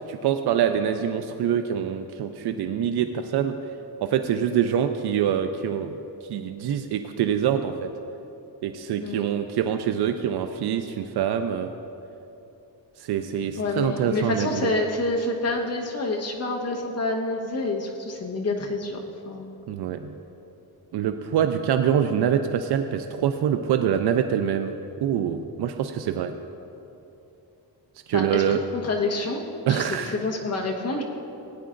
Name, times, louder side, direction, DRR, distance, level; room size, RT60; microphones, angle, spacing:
voice 1, 0.1-3.5 4.0-6.0 6.2-7.9 8.6-11.7 13.0-14.7 19.7-20.1 20.9-24.7 25.0-26.3 28.1-28.6 29.7-30.2, right 9 dB, 75° right, 8 dB, 0.5 m, -25 dB
voice 2, 13.6-19.0 19.3-19.6 28.1-31.0, left 2 dB, 40° left, 1 dB, 1.2 m, -28 dB
16.5 x 9.5 x 2.5 m, 2.9 s
wide cardioid pair, 140°, 39 cm